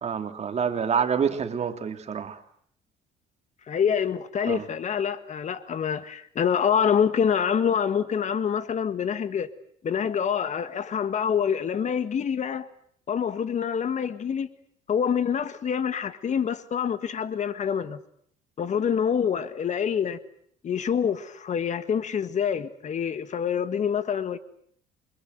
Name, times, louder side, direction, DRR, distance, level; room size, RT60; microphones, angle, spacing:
voice 1, 0.0-2.4 4.5-4.6, right 7 dB, 40° right, 2.8 m, -27 dB
voice 2, 3.7-9.5 9.8-12.7 13.1-14.5 14.9-18.0 18.6-20.2 20.6-24.4, left 7 dB, 45° left, 1.8 m, -26 dB
28.5 x 24.5 x 8.0 m
cardioid pair, 110°, 17 cm